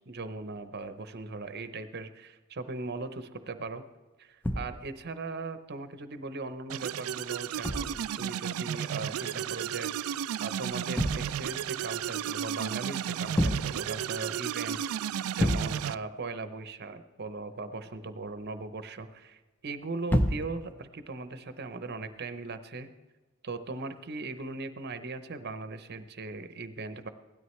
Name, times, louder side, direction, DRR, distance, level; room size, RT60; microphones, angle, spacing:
voice 1, 0.1-3.8 4.2-10.1 10.4-22.9 23.4-27.1, right 3 dB, 50° right, 10 dB, 0.7 m, -39 dB
sound 1, 4.4-5.1 7.6-8.3 10.7-11.6 13.2-14.0 14.4-14.5 14.8-14.9 15.4-16.0 20.1-20.7 21.9-22.1, equal, 10° left, 0.6 m, -30 dB
sound 2, 6.7-15.9, right 9 dB, 85° right, 0.3 m, -33 dB
17.0 x 12.5 x 3.2 m, 1.2 s
head